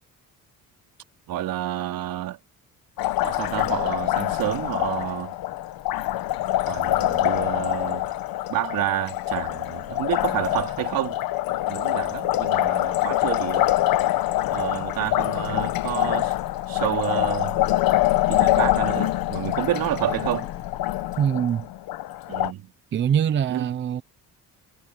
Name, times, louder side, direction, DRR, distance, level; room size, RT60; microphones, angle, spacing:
voice 1, 1.3-2.4 3.2-5.4 6.7-8.1 8.5-11.2 11.7-13.7 14.5-16.3 16.7-17.6 18.3-20.5 22.3-22.7 23.5-23.8, right 13 dB, 80° right, 3.1 m, -29 dB
Liquid, 3.0-22.5, left 15 dB, 90° left, 1.1 m, -25 dB
voice 2, 21.2-21.7 22.9-24.0, right 8 dB, 35° right, 0.7 m, -23 dB
cardioid pair, 175°, 34 cm